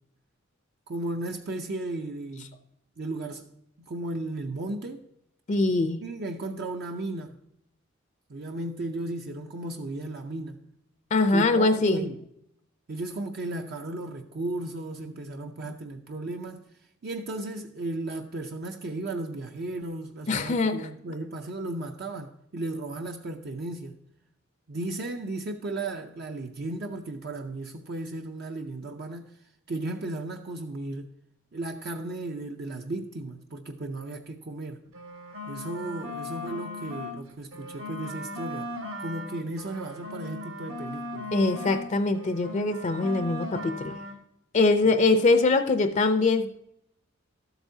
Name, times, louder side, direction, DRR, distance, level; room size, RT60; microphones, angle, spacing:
voice 1, 0.9-2.6 3.0-3.5 3.8-5.1 6.0-7.4 8.3-10.6 11.3-12.2 12.9-16.7 17.0-23.9 24.7-29.4 29.7-31.1 31.5-34.8 35.5-38.7 39.0-41.3 44.8-44.9, right 2 dB, 50° right, 0.6 m, -35 dB
voice 2, 5.5-6.0 11.1-12.1 15.7-15.8 20.3-20.9 41.3-43.9 44.5-46.6, left 3 dB, 35° left, 0.5 m, -23 dB
sound 1, 34.9-37.2 37.5-41.9 42.1-44.2, left 1 dB, 70° right, 1.5 m, -38 dB
13.0 x 8.0 x 2.7 m
head